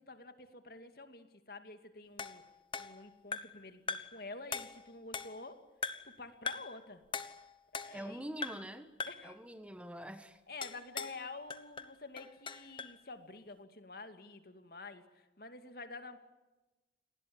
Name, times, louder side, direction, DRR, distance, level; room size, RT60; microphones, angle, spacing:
voice 1, 0.0-2.4 2.8-5.6 6.0-7.0 7.7-8.2 9.1-9.4 10.5-16.2, left 3 dB, 55° left, 8 dB, 2.5 m, -49 dB
sound 1, 2.2-3.6 3.9-4.2 4.5-5.5 5.8-6.2 6.5-6.8 7.1-8.1 8.4-8.7 9.0-9.3 10.6-11.2 11.5-13.0, left 5 dB, 30° left, 1.2 m, -41 dB
voice 2, 7.9-10.4, right 1 dB, 5° right, 9 dB, 1.4 m, -45 dB
29.0 x 19.5 x 8.7 m, 1.1 s
head